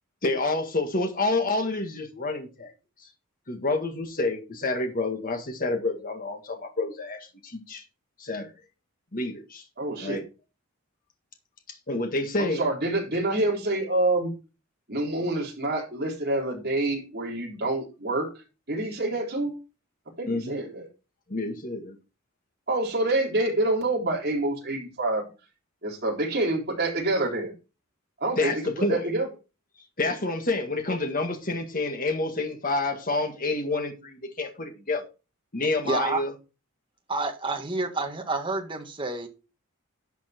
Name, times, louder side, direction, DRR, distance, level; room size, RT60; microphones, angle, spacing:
voice 1, 0.2-2.7 3.5-7.8 8.2-8.5 9.1-9.6 10.0-10.2 11.7-12.6 20.3-20.6 21.3-22.0 28.4-29.1 30.0-35.0 35.5-36.3, left 2 dB, 40° left, 1.8 m, -28 dB
voice 2, 9.8-10.2 12.4-14.3 14.9-18.3 18.7-19.5 20.2-20.8 22.7-25.2 25.8-27.5 28.2-28.6 28.9-29.3, right 2 dB, 45° right, 3.9 m, -27 dB
voice 3, 35.8-36.2 37.1-39.3, right 3 dB, 20° right, 1.7 m, -29 dB
11.5 x 5.9 x 4.4 m
head